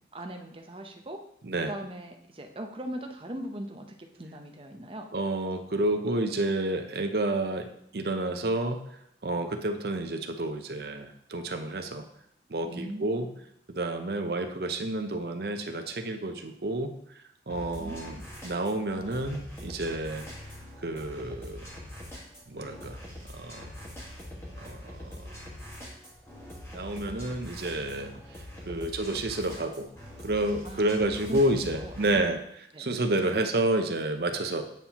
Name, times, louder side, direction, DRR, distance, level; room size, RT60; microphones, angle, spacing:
voice 1, 0.1-1.2 1.7-5.1 12.7-13.3 17.8-18.3 28.7-28.9 30.6-30.9 31.3-31.4 31.7-31.9 32.7-32.9, right 1 dB, 30° right, 3 dB, 0.7 m, -39 dB
voice 2, 5.1-7.7 7.9-8.8 9.2-12.1 12.5-13.3 13.7-18.2 18.4-20.3 20.8-21.7 22.5-23.0 23.3-23.7 24.6-25.4 26.7-29.9 30.2-32.4 32.8-34.6, right 1 dB, 60° right, 6 dB, 0.7 m, -30 dB
sound 1, 17.5-32.3, left 1 dB, 15° left, 1.6 m, -43 dB
9.0 x 5.7 x 2.9 m, 0.74 s
head